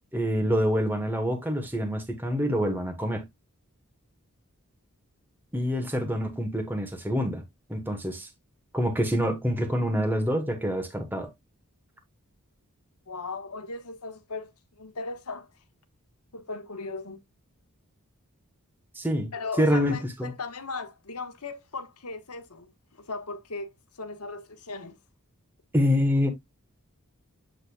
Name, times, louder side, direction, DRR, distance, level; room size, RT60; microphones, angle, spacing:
voice 1, 0.1-3.2 5.5-7.4 7.7-8.3 8.7-11.3 18.9-20.3 25.7-26.3, equal, 10° right, 1.3 m, -26 dB
voice 2, 13.1-14.5 14.8-15.5 16.3-17.2 19.3-22.7 23.1-23.7 24.0-25.0, left 3 dB, 85° left, 1.4 m, -37 dB
8.3 x 5.1 x 2.3 m
head